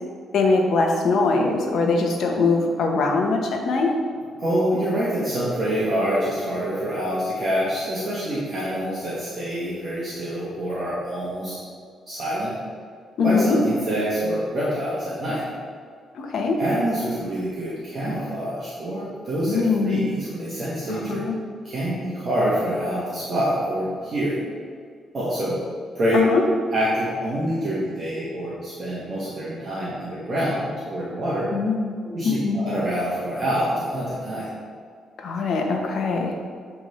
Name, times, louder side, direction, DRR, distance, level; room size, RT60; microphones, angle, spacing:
voice 1, 0.3-3.9 13.2-13.6 16.1-16.6 19.5-20.2 20.9-21.4 26.1-26.4 31.5-32.0 32.2-32.7 35.2-36.3, left 4 dB, 60° left, 2 dB, 1.1 m, -22 dB
voice 2, 4.4-11.6 12.1-12.5 13.2-15.4 16.6-21.2 21.6-24.4 25.1-25.6 26.0-26.2 26.7-31.5 32.0-34.5, equal, 40° right, -8 dB, 1.6 m, -26 dB
10.5 x 3.6 x 4.4 m, 2.1 s
cardioid pair, 140°, 0 cm